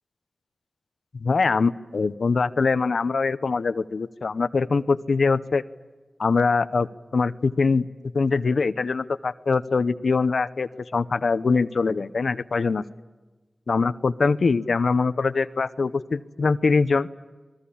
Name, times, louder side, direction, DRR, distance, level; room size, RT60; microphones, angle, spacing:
voice 1, 1.2-5.6 6.2-7.8 8.1-12.8 13.7-17.1, left 4 dB, 80° left, 14 dB, 0.8 m, -23 dB
27.5 x 20.5 x 8.6 m, 1.2 s
wide cardioid pair, 60°, 0 cm